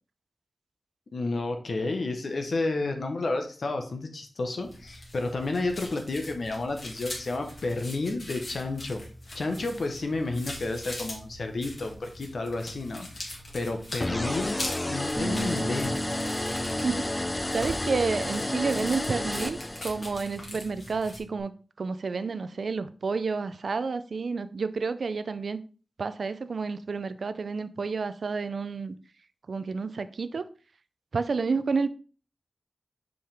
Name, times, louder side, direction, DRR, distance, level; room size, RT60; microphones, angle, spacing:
voice 1, 1.1-9.0 9.3-14.6 14.9-16.0, left 2 dB, 65° left, 1.1 m, -31 dB
sound 1, 4.6-21.2, left 1 dB, 45° left, 2.0 m, -42 dB
sound 2, 14.0-20.2, left 1 dB, 20° left, 0.4 m, -31 dB
Bass guitar, 15.2-21.4, right 1 dB, 5° right, 1.5 m, -39 dB
voice 2, 16.8-17.3 17.5-21.5 21.8-25.6 26.0-29.0 29.5-30.5 31.1-31.9, right 4 dB, 65° right, 0.4 m, -30 dB
5.5 x 5.4 x 3.4 m
wide cardioid pair, 100°, 0 cm